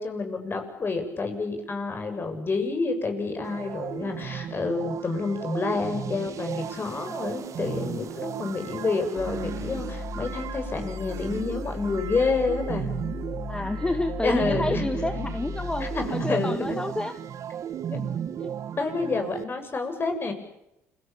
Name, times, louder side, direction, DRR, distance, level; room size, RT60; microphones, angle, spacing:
voice 1, 0.0-12.9 14.2-15.4 15.8-16.8 17.9-18.0 18.8-20.3, left 3 dB, 35° left, 6 dB, 7.3 m, -29 dB
sound 1, 3.4-19.4, right 9 dB, 60° right, 1.6 m, -35 dB
sound 2, 9.2-16.1, left 4 dB, 55° left, 7.4 m, -36 dB
voice 2, 13.5-17.1 18.4-18.5 19.1-19.2, left 2 dB, 15° left, 9 dB, 1.8 m, -29 dB
29.0 x 23.0 x 7.3 m, 0.85 s
supercardioid pair, 70°, 6 cm